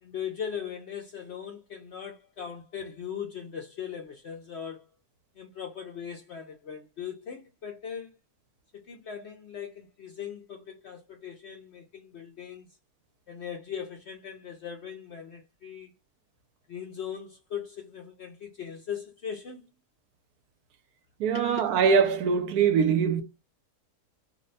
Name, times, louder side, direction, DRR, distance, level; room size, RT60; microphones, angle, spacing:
voice 1, 0.0-4.9 5.4-8.2 8.7-12.8 13.3-15.9 16.7-19.7 21.3-21.6, left 8 dB, 65° left, 0.7 m, -39 dB
voice 2, 21.2-23.2, right 6 dB, 75° right, 1.1 m, -23 dB
2.7 x 2.1 x 3.8 m
omnidirectional pair, 1.7 m